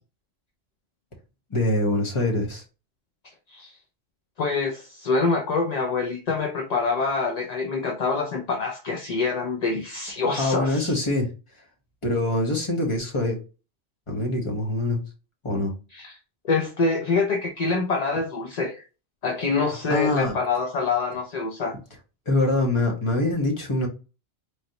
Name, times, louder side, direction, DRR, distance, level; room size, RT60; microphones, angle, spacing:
voice 1, 1.5-2.6 10.4-11.3 12.0-13.4 14.1-15.0 15.4-15.7 19.9-20.3 22.3-23.9, left 2 dB, 30° left, 1.1 m, -24 dB
voice 2, 4.4-10.9 15.9-16.2 16.4-18.8 19.2-21.7, left 4 dB, 45° left, 0.6 m, -26 dB
4.0 x 3.3 x 2.8 m
omnidirectional pair, 1.2 m